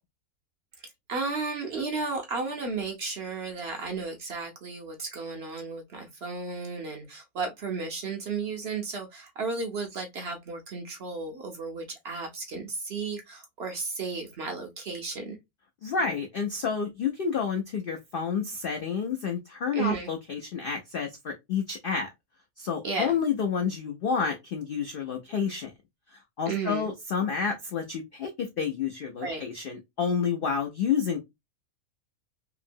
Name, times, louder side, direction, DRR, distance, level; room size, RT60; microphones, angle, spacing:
voice 1, 1.1-15.4 19.7-20.1 22.8-23.1 26.5-26.9 29.2-29.4, right 4 dB, 55° right, 0.7 m, -33 dB
voice 2, 15.8-22.1 22.6-25.7 26.1-31.2, left 6 dB, 70° left, 0.5 m, -29 dB
2.9 x 2.6 x 2.5 m
omnidirectional pair, 1.5 m